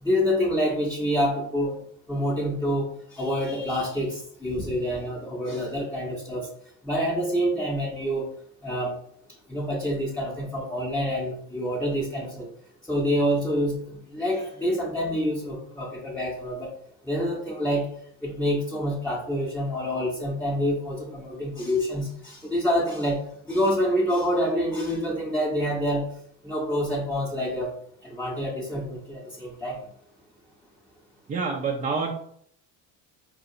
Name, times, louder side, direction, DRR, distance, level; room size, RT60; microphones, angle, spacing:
voice 1, 0.0-1.8 2.1-6.5 6.8-8.3 8.6-8.9 9.5-12.5 12.9-16.7 17.0-17.9 18.2-26.1 26.4-27.7 28.0-29.8, equal, 5° left, -4 dB, 0.7 m, -27 dB
voice 2, 31.3-32.1, right 4 dB, 20° right, 0 dB, 0.4 m, -27 dB
4.1 x 2.4 x 2.7 m, 0.66 s
supercardioid pair, 95°, 37 cm